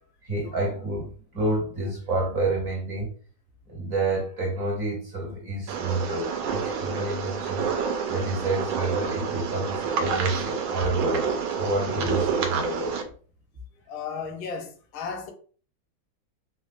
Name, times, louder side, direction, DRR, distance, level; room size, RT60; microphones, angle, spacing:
voice 1, 0.2-3.1 3.7-7.7 8.1-13.1, right 2 dB, 55° right, 1.0 m, -29 dB
sound 1, 5.7-13.0, right 6 dB, 85° right, 1.4 m, -28 dB
voice 2, 13.9-15.3, left 5 dB, 75° left, 1.4 m, -34 dB
4.3 x 2.6 x 2.4 m
omnidirectional pair, 2.2 m